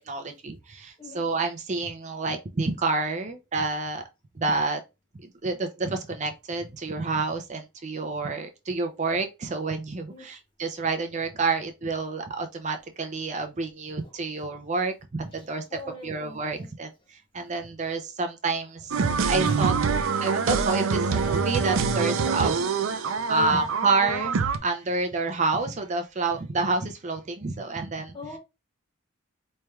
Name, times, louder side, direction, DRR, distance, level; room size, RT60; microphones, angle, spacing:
voice 1, 0.1-4.0 4.4-4.8 5.4-15.6 16.0-19.0 19.2-19.7 20.2-22.6 23.0-28.2, right 3 dB, 35° right, 0.5 m, -29 dB
voice 2, 15.3-16.7 17.3-17.4 19.5-19.6 22.9-23.6 28.1-28.4, left 2 dB, 25° left, 0.8 m, -44 dB
sound 1, 18.9-24.6, right 5 dB, 85° right, 0.5 m, -25 dB
4.4 x 3.2 x 2.3 m
head